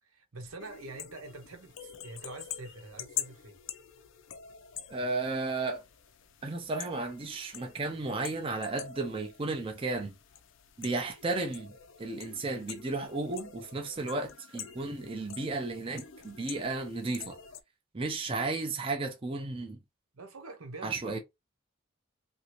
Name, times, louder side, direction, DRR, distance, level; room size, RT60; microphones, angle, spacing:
voice 1, 0.0-3.6 20.1-21.2, right 3 dB, 85° right, 1.0 m, -45 dB
sound 1, 0.6-17.6, left 9 dB, 60° left, 0.4 m, -46 dB
voice 2, 4.9-5.8 6.4-10.1 10.8-11.7 12.0-17.4 17.9-19.8 20.8-21.2, right 3 dB, 25° right, 0.5 m, -34 dB
2.9 x 2.6 x 2.9 m
head